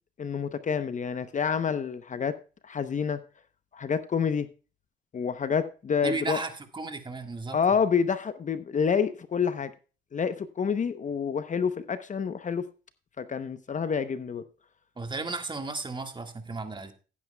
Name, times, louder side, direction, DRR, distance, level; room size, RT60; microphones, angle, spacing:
voice 1, 0.2-2.4 2.6-3.2 3.7-4.5 5.1-6.4 7.5-9.7 10.1-12.7 13.2-14.4, left 6 dB, 40° left, 0.8 m, -28 dB
voice 2, 6.0-7.6 15.0-16.9, right 3 dB, 25° right, 1.7 m, -34 dB
15.5 x 9.4 x 2.2 m
cardioid pair, 90°, 20 cm